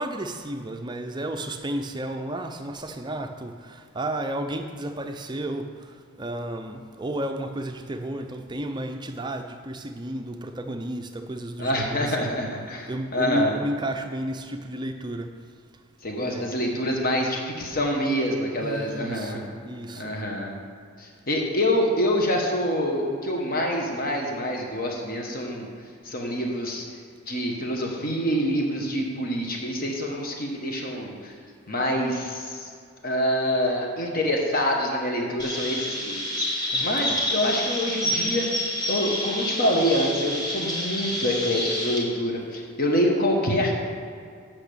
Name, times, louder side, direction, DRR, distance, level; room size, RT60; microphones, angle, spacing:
voice 1, 0.0-12.3 12.9-15.3 16.2-16.6 18.6-20.2 36.7-37.2, right 1 dB, 20° right, 5 dB, 0.5 m, -32 dB
voice 2, 11.6-13.5 16.0-19.4 19.9-20.5 21.0-25.7 26.0-27.0 27.3-31.4 31.7-32.7 33.0-38.5 38.9-43.7, equal, 40° left, 0 dB, 1.3 m, -26 dB
Chirp tweet, 35.4-42.0, equal, 20° left, 1.3 m, -28 dB
8.3 x 6.0 x 6.8 m, 2.2 s
head